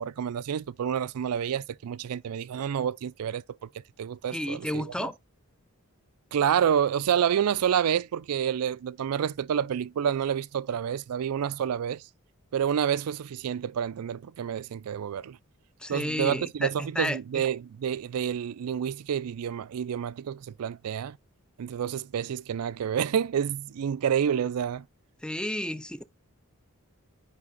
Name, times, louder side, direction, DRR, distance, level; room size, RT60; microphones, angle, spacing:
voice 1, 0.0-3.4 4.0-5.1 6.3-12.0 12.5-15.4 15.9-21.2 21.6-24.9, right 8 dB, 80° right, 0.4 m, -28 dB
voice 2, 4.3-5.2 15.8-17.5 25.2-26.0, left 1 dB, 5° left, 0.4 m, -32 dB
9.7 x 3.4 x 3.9 m
head